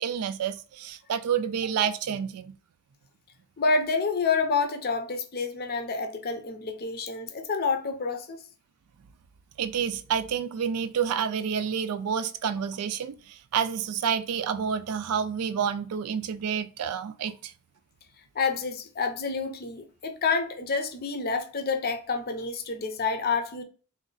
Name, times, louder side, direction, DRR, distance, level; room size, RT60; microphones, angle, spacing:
voice 1, 0.0-2.5 9.6-17.5, right 7 dB, 80° right, 0.4 m, -29 dB
voice 2, 3.6-8.4 18.3-23.6, left 4 dB, 45° left, 0.6 m, -28 dB
3.9 x 2.6 x 3.9 m
head